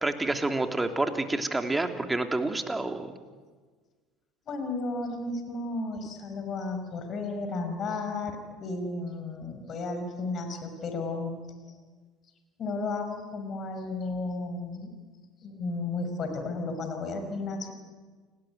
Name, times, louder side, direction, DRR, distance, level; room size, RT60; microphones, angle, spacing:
voice 1, 0.0-3.2, right 2 dB, 15° right, 6 dB, 3.0 m, -28 dB
voice 2, 4.5-11.3 12.6-14.9 15.4-17.7, left 3 dB, 40° left, 6 dB, 5.6 m, -33 dB
29.5 x 19.5 x 9.5 m, 1.4 s
figure-of-eight pair, 65°, 0 cm